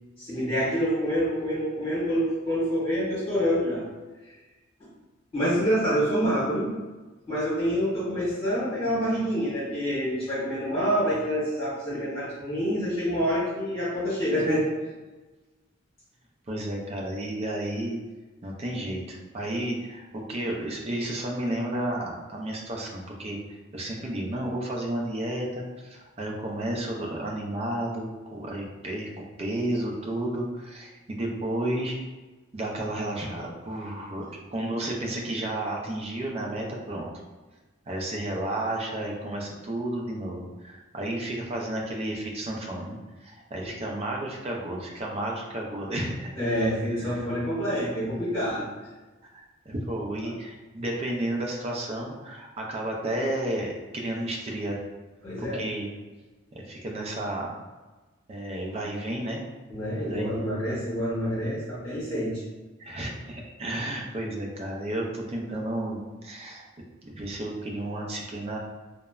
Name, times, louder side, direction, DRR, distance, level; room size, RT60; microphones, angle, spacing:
voice 1, 0.2-3.8 5.3-6.7 7.3-14.7 43.6-43.7 46.4-48.7 50.2-50.3 55.2-55.6 59.7-62.4, equal, 30° left, -11 dB, 1.3 m, -27 dB
voice 2, 16.5-18.0 18.4-23.4 23.7-29.1 29.4-32.0 32.5-34.2 34.5-37.1 37.9-46.3 47.0-47.3 49.3-54.8 55.4-55.9 56.5-57.5 58.3-59.4 60.0-60.7 62.8-66.6 67.1-68.6, right 1 dB, 30° right, -1 dB, 0.4 m, -32 dB
3.0 x 2.1 x 2.3 m, 1.2 s
head